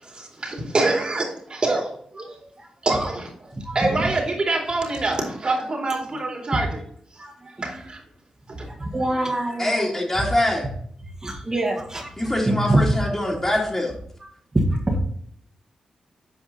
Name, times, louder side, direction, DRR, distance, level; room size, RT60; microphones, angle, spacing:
voice 1, 0.1-1.9 2.1-2.4 2.8-3.5 3.7-6.8 7.6-8.0 8.6-8.7, right 2 dB, 45° right, 0 dB, 2.7 m, -25 dB
voice 2, 3.6-4.1 7.2-7.3 7.6-7.8 8.5-9.9 11.0-12.8 14.5-15.0, right 1 dB, 30° right, 0 dB, 1.7 m, -25 dB
voice 3, 9.6-10.7 12.2-13.9, left 1 dB, 20° left, -4 dB, 2.2 m, -24 dB
8.1 x 5.1 x 4.1 m, 0.63 s
cardioid pair, 60°, 2 cm